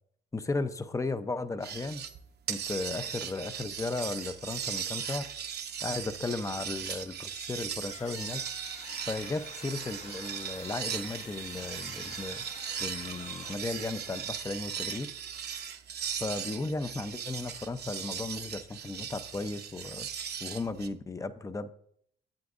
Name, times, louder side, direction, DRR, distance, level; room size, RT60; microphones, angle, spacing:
voice 1, 0.3-2.0 2.5-5.3 5.8-8.5 9.1-12.4 12.8-15.1 16.2-20.1 20.4-21.7, left 3 dB, 15° left, 11 dB, 0.6 m, -35 dB
sound 1, 1.6-2.2 2.5-20.9, right 8 dB, 55° right, 0.8 m, -38 dB
sound 2, 7.8-13.6, left 4 dB, 35° left, 1.0 m, -48 dB
11.5 x 8.6 x 2.5 m, 0.65 s
cardioid pair, 90°, 20 cm